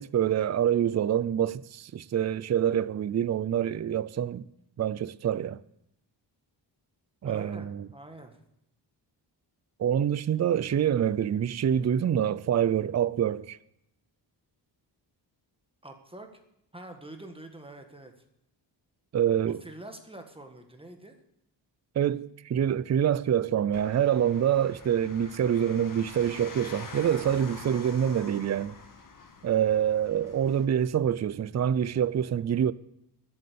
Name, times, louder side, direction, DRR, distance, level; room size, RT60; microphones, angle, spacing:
voice 1, 0.0-4.4 4.8-5.6 7.2-7.9 9.8-13.6 19.1-19.6 22.0-28.7 29.4-32.7, right 9 dB, 40° right, 0.5 m, -26 dB
voice 2, 7.2-8.4 15.8-16.3 16.7-18.1 19.4-21.2, right 1 dB, 10° right, 1.7 m, -45 dB
sound 1, 23.7-30.6, left 4 dB, 45° left, 1.8 m, -46 dB
13.0 x 7.9 x 8.5 m
wide cardioid pair, 140°, 44 cm